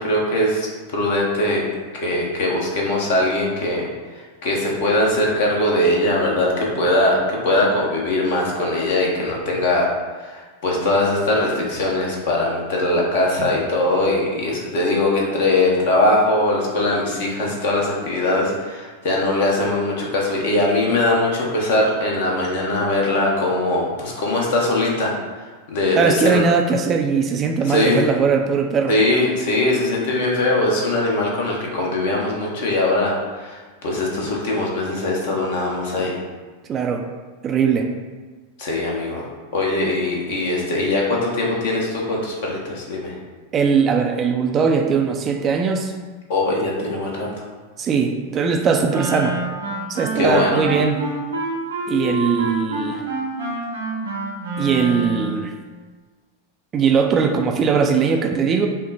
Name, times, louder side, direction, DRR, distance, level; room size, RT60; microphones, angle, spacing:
voice 1, 0.0-1.6 1.9-3.8 4.4-9.9 10.2-25.1 25.7-26.5 27.7-28.1 28.9-36.2 38.6-39.3 39.5-43.2 46.3-47.4 50.1-50.6, left 2 dB, 55° left, -2 dB, 1.1 m, -21 dB
voice 2, 26.0-29.0 36.7-37.1 37.4-37.9 43.5-45.9 47.8-49.4 49.9-51.0 51.9-53.0 54.6-55.5 56.7-58.7, right 5 dB, 25° right, 3 dB, 0.4 m, -20 dB
Wind instrument woodwind instrument, 48.9-55.5, right 1 dB, 80° right, 1.0 m, -27 dB
5.5 x 2.1 x 4.0 m, 1.4 s
figure-of-eight pair, 90°, 0 cm